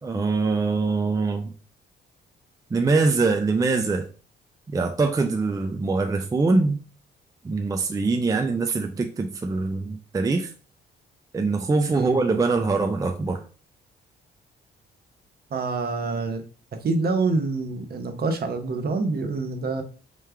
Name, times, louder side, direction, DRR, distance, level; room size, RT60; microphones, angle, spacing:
voice 1, 0.0-1.5 2.7-4.0 4.7-6.8 7.4-10.5 11.3-13.4, right 3 dB, 15° right, 0.4 m, -23 dB
voice 2, 15.5-16.4 16.8-19.8, right 3 dB, 50° right, 0.9 m, -26 dB
3.5 x 3.1 x 3.3 m
cardioid pair, 90°, 20 cm